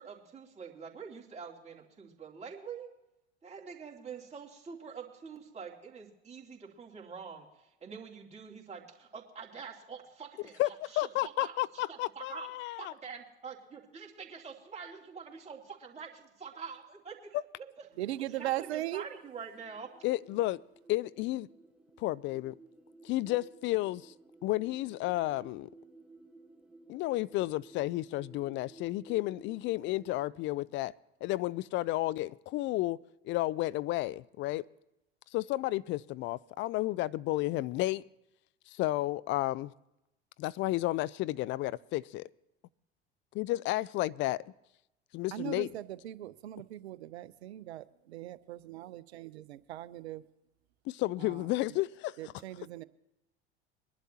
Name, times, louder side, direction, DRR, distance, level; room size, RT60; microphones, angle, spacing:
voice 1, 0.0-2.9 3.4-7.5 7.8-12.5 12.8-17.9 18.3-19.9, right 6 dB, 20° right, 2.9 m, -46 dB
voice 2, 11.0-12.9 20.0-20.6 20.9-21.5 22.0-22.6 23.0-24.1 24.4-25.7 26.9-30.9 31.2-33.0 33.2-34.6 35.3-38.0 38.7-39.7 40.4-42.3 43.4-44.4 45.1-45.7 50.9-52.2, left 17 dB, 35° left, 0.4 m, -32 dB
sound 1, 17.9-30.3, right 3 dB, 5° right, 1.2 m, -57 dB
voice 3, 18.0-19.0 45.3-50.3 51.2-51.8 52.2-52.8, right 14 dB, 75° right, 0.7 m, -39 dB
22.5 x 11.5 x 2.8 m
figure-of-eight pair, 75°, 33 cm